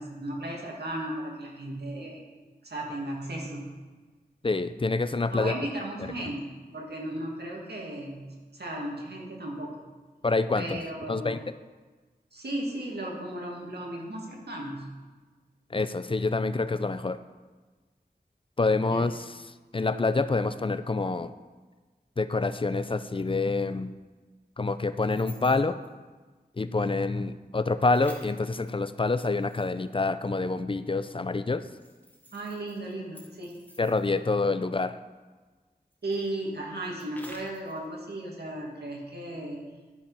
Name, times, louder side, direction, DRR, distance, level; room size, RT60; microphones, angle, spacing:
voice 1, 0.0-2.2 2.6-3.7 5.3-8.3 8.5-9.8 10.5-11.3 12.3-14.9 18.9-19.0 32.3-33.5 36.0-39.7, right 1 dB, 75° right, -2 dB, 2.0 m, -35 dB
voice 2, 4.4-5.5 6.2-6.3 10.2-10.8 11.1-11.4 15.7-17.2 18.6-19.2 19.7-21.3 22.2-23.9 24.6-25.8 26.6-31.6 33.8-35.0, left 3 dB, 30° left, 12 dB, 0.4 m, -27 dB
sound 1, 22.4-22.5 25.0-25.9 27.8-30.0 31.6-34.3 35.9-37.9, left 1 dB, 10° left, 1.9 m, -51 dB
12.0 x 4.9 x 5.4 m, 1.3 s
wide cardioid pair, 65°, 17 cm